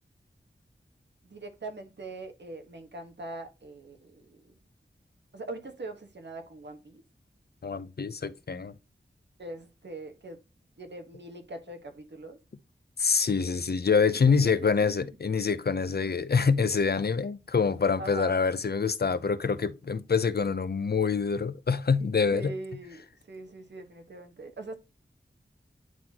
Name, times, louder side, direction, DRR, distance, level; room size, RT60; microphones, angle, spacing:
voice 1, 1.2-4.4 5.3-7.0 9.4-10.4 10.8-12.4 14.1-15.0 16.0-16.2 18.0-18.4 22.3-24.8, right 2 dB, 70° right, 1.5 m, -42 dB
voice 2, 7.6-8.7 13.0-22.5, left 5 dB, 60° left, 0.7 m, -26 dB
9.2 x 4.1 x 2.9 m
wide cardioid pair, 85°, 19 cm